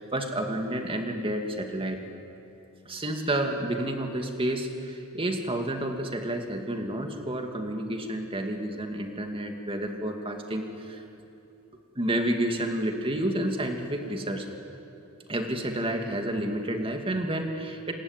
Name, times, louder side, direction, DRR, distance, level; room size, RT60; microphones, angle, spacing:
voice 1, 0.0-2.0 2.9-11.0 12.0-14.5 15.3-17.9, right 1 dB, 25° right, 4 dB, 2.4 m, -30 dB
27.5 x 21.5 x 9.1 m, 2.8 s
head